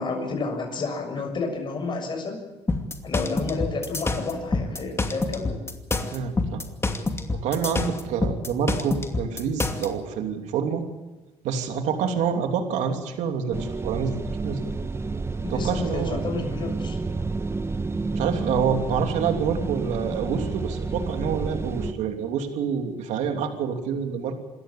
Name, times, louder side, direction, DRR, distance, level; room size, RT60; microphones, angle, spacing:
voice 1, 0.0-2.4 3.0-5.6 15.4-17.0, left 3 dB, 40° left, 3 dB, 6.8 m, -30 dB
sound 1, 2.7-9.9, left 3 dB, 20° left, 2.6 m, -27 dB
voice 2, 6.1-6.7 7.4-10.9 11.4-14.2 14.4-14.6 15.5-16.2 18.1-24.3, right 7 dB, 80° right, 5 dB, 3.0 m, -27 dB
sound 2, 13.5-21.9, right 3 dB, 20° right, 1.3 m, -30 dB
27.0 x 13.5 x 8.6 m, 1.2 s
cardioid pair, 90°, 12 cm